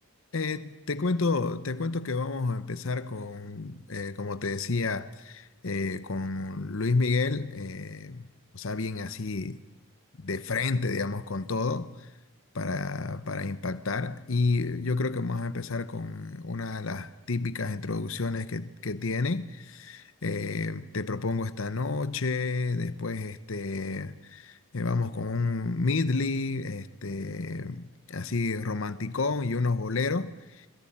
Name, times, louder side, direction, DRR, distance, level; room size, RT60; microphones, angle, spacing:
voice 1, 0.3-8.3 8.5-9.6 10.2-12.1 12.5-30.7, left 3 dB, 60° left, 0.9 m, -30 dB
26.5 x 22.0 x 8.8 m
head